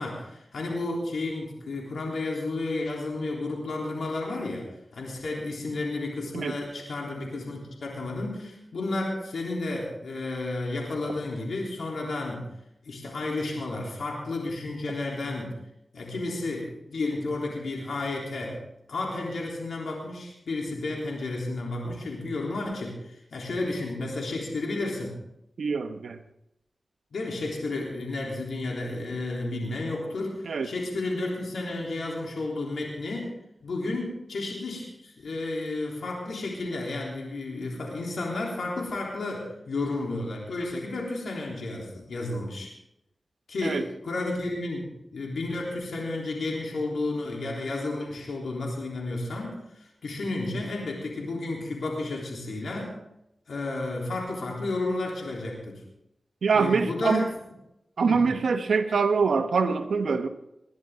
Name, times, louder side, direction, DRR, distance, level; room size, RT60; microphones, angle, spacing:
voice 1, 0.0-4.7 4.9-12.5 12.8-15.6 15.9-18.6 18.9-25.1 27.1-33.3 33.6-42.7 43.5-52.9 53.5-55.8 56.5-57.3 58.1-58.2, left 2 dB, 85° left, -2 dB, 3.4 m, -32 dB
voice 2, 25.6-26.2 30.5-30.7 43.6-43.8 56.4-57.2 58.0-60.3, right 5 dB, 85° right, 7 dB, 1.1 m, -24 dB
21.5 x 11.0 x 3.8 m, 0.83 s
cardioid pair, 50°, 0 cm